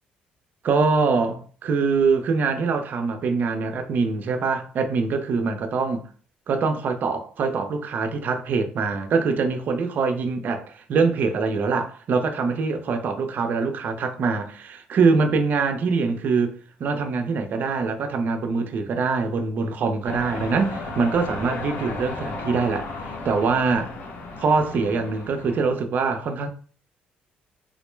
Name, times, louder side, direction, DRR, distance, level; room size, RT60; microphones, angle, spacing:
voice 1, 0.6-6.0 6.5-22.9 23.2-23.9 24.4-26.5, right 4 dB, 55° right, 0.5 m, -24 dB
sound 1, 20.0-25.7, left 3 dB, 55° left, 0.7 m, -34 dB
3.7 x 2.1 x 3.2 m
cardioid pair, 95°, 4 cm